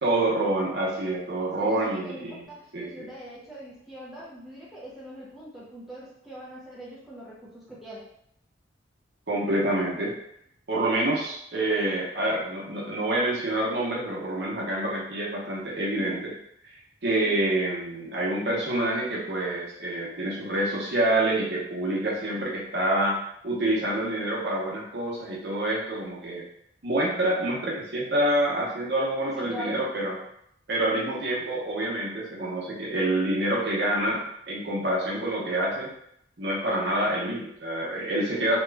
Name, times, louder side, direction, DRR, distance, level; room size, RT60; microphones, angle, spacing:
voice 1, 0.0-2.5 2.7-3.1 9.3-10.2 10.7-16.3 16.7-26.4 26.8-30.2 30.7-35.9 36.4-38.6, right 1 dB, 60° right, -4 dB, 0.9 m, -27 dB
voice 2, 1.6-8.1 15.9-16.3 17.2-17.4 29.2-29.9 30.9-31.2 38.3-38.5, equal, ahead, -8 dB, 0.6 m, -42 dB
3.0 x 2.3 x 3.3 m, 0.72 s
head